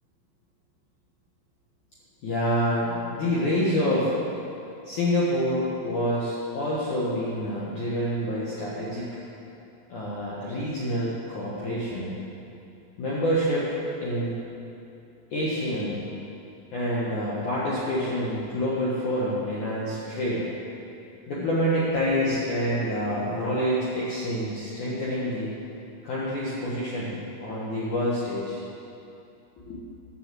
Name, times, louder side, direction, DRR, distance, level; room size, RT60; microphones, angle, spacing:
voice 1, 2.2-4.1 4.8-9.1 9.9-12.2 13.0-13.7 14.0-14.3 15.3-16.0 16.7-20.5 21.3-25.5 26.0-28.6 29.7-29.8, equal, 85° left, -7 dB, 1.7 m, -27 dB
10.5 x 7.8 x 7.6 m, 2.7 s
omnidirectional pair, 6.0 m